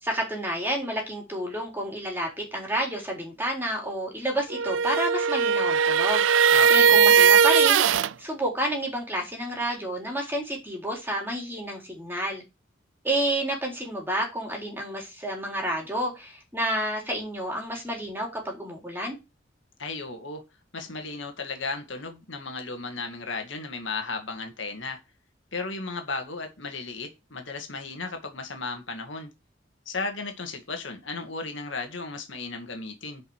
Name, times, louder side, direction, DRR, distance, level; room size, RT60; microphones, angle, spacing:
voice 1, 0.0-7.8 8.2-12.4 13.0-19.2, right 1 dB, 10° right, 3.9 m, -30 dB
sound 1, 4.5-8.1, right 7 dB, 75° right, 0.5 m, -19 dB
voice 2, 6.5-7.0 19.8-20.4 20.7-25.0 25.5-29.3 29.9-33.2, left 3 dB, 65° left, 2.1 m, -35 dB
11.0 x 5.3 x 4.9 m
head